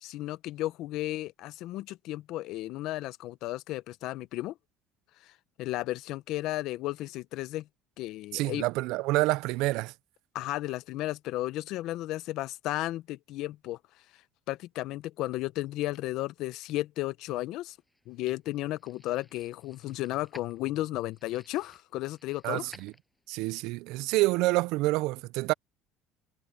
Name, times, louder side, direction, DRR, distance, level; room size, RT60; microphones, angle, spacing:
voice 1, 0.0-4.5 5.2-5.3 5.6-7.7 8.0-8.6 10.3-13.8 14.5-17.8 18.1-22.7, left 16 dB, 70° left, 0.8 m, -34 dB
voice 2, 8.3-9.9 22.4-22.9 23.3-25.5, right 20 dB, 80° right, 0.4 m, -27 dB
sound 1, 17.6-23.5, left 1 dB, 5° left, 6.3 m, -57 dB
cardioid pair, 110°, 0 cm